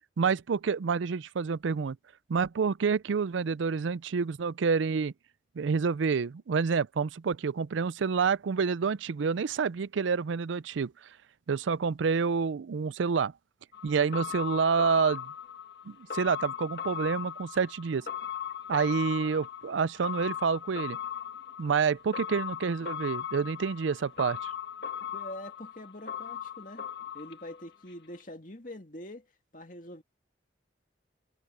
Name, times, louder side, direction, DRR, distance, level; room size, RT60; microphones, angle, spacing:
voice 1, 0.2-2.0 2.3-5.1 5.6-10.9 11.5-13.3 13.8-15.3 15.9-18.1 18.7-21.0 21.6-24.5, right 5 dB, 85° right, 0.4 m, -28 dB
sound 1, 13.7-27.9 28.2-28.3, left 8 dB, 60° left, 2.2 m, -38 dB
voice 2, 25.1-26.9 27.1-29.3 29.5-30.0, left 1 dB, 45° left, 2.4 m, -44 dB
head